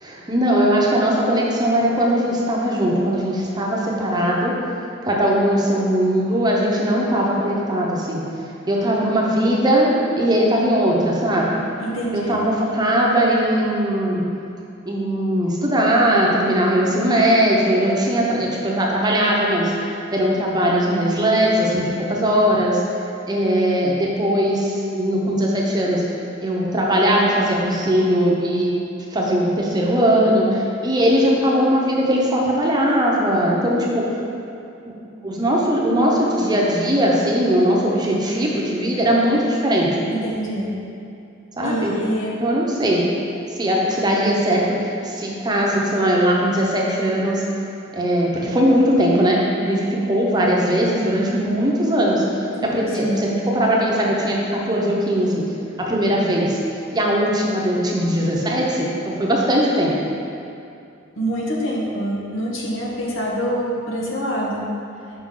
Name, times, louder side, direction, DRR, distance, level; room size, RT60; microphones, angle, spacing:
voice 1, 0.0-4.6 5.0-8.2 8.7-11.6 12.1-14.2 14.9-22.8 23.3-26.0 26.4-28.7 29.1-34.0 35.2-39.9 41.5-41.9 42.4-43.0 43.6-47.4 47.9-55.4 55.8-56.6 56.9-59.9, equal, 20° right, -3 dB, 0.8 m, -19 dB
voice 2, 11.8-12.4 40.1-40.7 41.6-42.3 52.5-53.2 61.2-64.6, equal, 75° left, -3 dB, 1.0 m, -26 dB
6.2 x 4.8 x 3.7 m, 2.6 s
head